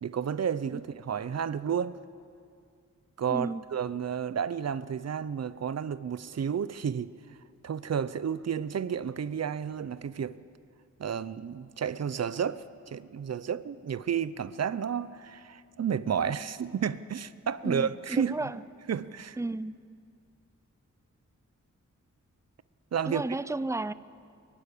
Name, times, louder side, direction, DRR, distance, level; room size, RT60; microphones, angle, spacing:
voice 1, 0.0-2.0 3.2-7.1 7.6-10.4 11.0-18.4 18.9-19.4 22.9-23.2, right 7 dB, 55° right, 16 dB, 0.6 m, -31 dB
voice 2, 3.3-3.6 17.6-18.6 19.4-19.7 23.1-23.9, right 2 dB, 10° right, 16 dB, 0.4 m, -32 dB
22.5 x 12.0 x 10.0 m, 2.3 s
wide cardioid pair, 140°, 30 cm